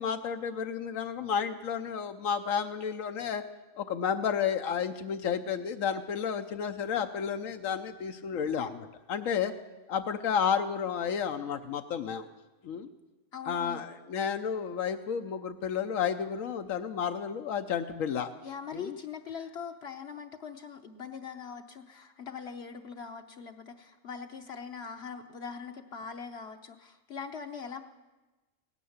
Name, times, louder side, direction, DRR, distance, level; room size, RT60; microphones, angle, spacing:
voice 1, 0.0-3.4 3.8-9.5 9.9-12.3 12.6-12.9 13.5-18.3 18.7-18.9, left 7 dB, 80° left, 7 dB, 1.1 m, -31 dB
voice 2, 13.3-13.8 18.4-27.8, left 6 dB, 60° left, 5 dB, 0.9 m, -42 dB
17.5 x 10.0 x 7.1 m, 1.2 s
omnidirectional pair, 1.4 m